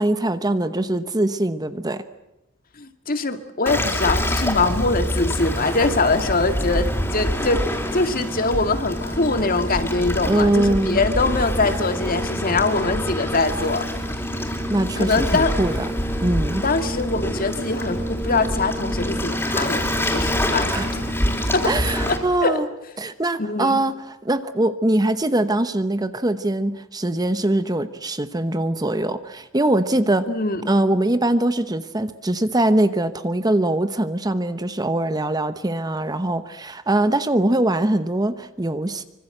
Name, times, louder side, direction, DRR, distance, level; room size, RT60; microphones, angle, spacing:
voice 1, 0.0-2.0 10.3-11.0 14.7-15.9 16.2-16.6 20.7-21.0 21.6-22.7 23.0-30.3 30.7-39.0, right 1 dB, 20° right, 11 dB, 1.0 m, -22 dB
voice 2, 2.8-7.6 7.9-13.8 15.0-15.5 16.6-20.7 21.5-21.7 22.1-22.6 23.4-23.8 30.3-30.6, left 3 dB, 45° left, 8 dB, 2.1 m, -23 dB
Waves surf, 3.7-22.2, equal, 10° left, 4.4 m, -26 dB
25.0 x 25.0 x 7.9 m, 0.89 s
head